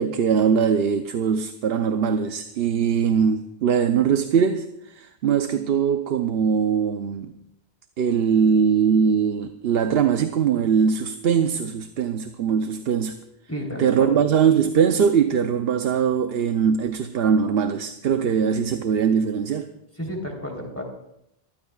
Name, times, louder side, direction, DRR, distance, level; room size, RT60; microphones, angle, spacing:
voice 1, 0.0-7.3 8.0-13.2 13.8-19.7, right 7 dB, 75° right, 0.9 m, -21 dB
voice 2, 13.5-14.2 20.0-20.8, equal, 15° left, 3.5 m, -31 dB
25.0 x 14.5 x 2.4 m
omnidirectional pair, 1.0 m